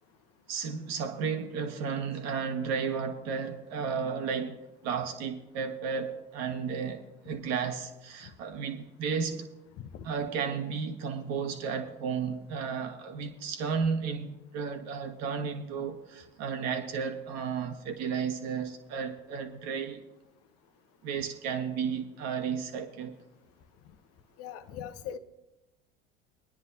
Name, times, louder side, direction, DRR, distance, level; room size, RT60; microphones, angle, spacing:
voice 1, 0.5-4.6 4.8-9.5 10.0-20.0 21.0-23.2, right 6 dB, 60° right, 5 dB, 1.6 m, -33 dB
voice 2, 24.4-25.2, left 9 dB, 50° left, 8 dB, 0.9 m, -40 dB
24.5 x 10.0 x 2.8 m, 0.99 s
hypercardioid pair, 85°, 30 cm